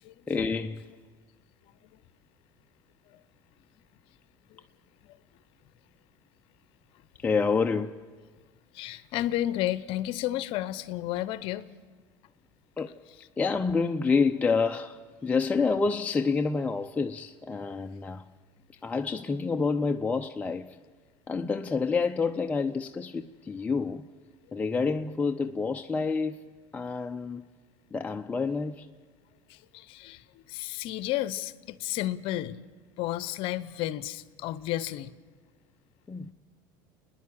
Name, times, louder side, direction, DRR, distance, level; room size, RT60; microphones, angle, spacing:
voice 1, 0.3-0.9 7.2-8.0 12.8-13.0 13.4-18.3 18.8-20.8 21.3-24.1 24.5-26.4 26.7-27.4 27.9-28.9 36.1-36.3, left 4 dB, 15° left, 0.5 m, -28 dB
voice 2, 8.7-11.7 29.5-32.6 33.0-35.1, left 14 dB, 60° left, 0.7 m, -32 dB
30.0 x 10.5 x 8.6 m
supercardioid pair, 115°, 10 cm